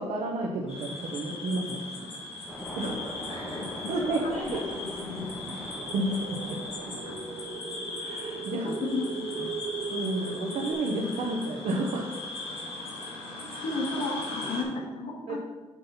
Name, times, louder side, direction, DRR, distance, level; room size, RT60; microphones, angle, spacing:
voice 1, 0.0-2.1 2.7-3.3 3.9-4.8 5.5-6.9 8.0-8.7 9.9-12.3 15.3-15.4, right 2 dB, 75° right, 0 dB, 0.9 m, -32 dB
sound 1, 0.7-14.6, left 2 dB, 55° left, 2.5 m, -39 dB
sound 2, 2.5-7.5, equal, 5° left, 1.5 m, -41 dB
voice 2, 3.3-5.3 8.5-9.5 13.2-15.4, left 2 dB, 70° left, -2 dB, 1.6 m, -34 dB
sound 3, 5.7-10.7, right 5 dB, 50° right, 0.6 m, -38 dB
7.4 x 4.2 x 5.5 m, 1.2 s
cardioid pair, 175°, 11 cm